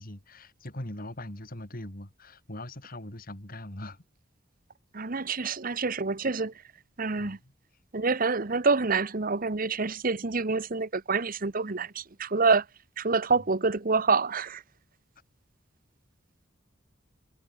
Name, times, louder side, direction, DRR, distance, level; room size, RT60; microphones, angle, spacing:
voice 1, 0.0-4.0 7.2-7.5, left 1 dB, 50° left, 3.9 m, -41 dB
voice 2, 4.9-6.5 7.0-7.4 7.9-12.6 13.0-14.6, right 4 dB, 45° right, 1.1 m, -27 dB
head